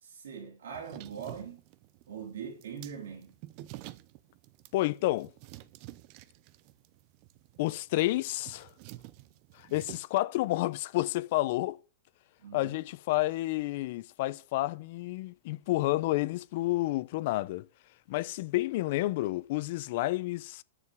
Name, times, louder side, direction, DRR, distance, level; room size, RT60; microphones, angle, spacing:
voice 1, 0.0-1.6 2.1-3.3 12.4-12.8, right 7 dB, 90° right, 3.0 m, -42 dB
sound 1, 0.7-10.0, right 16 dB, 45° right, 0.8 m, -50 dB
voice 2, 4.7-5.3 7.6-8.7 9.6-11.8 12.5-17.7 18.1-20.6, left 18 dB, 55° left, 0.7 m, -30 dB
9.8 x 7.0 x 7.6 m
supercardioid pair, 145°, 0 cm